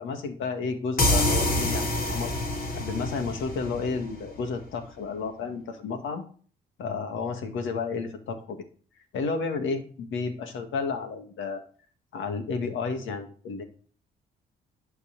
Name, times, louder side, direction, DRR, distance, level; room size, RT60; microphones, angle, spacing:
voice 1, 0.0-2.3 2.7-6.2 6.8-8.6 9.1-11.6 12.1-13.6, left 4 dB, 80° left, 7 dB, 2.0 m, -32 dB
sound 1, 1.0-4.5, left 1 dB, 45° left, 2.6 m, -27 dB
11.5 x 4.6 x 7.4 m, 0.44 s
cardioid pair, 90°, 20 cm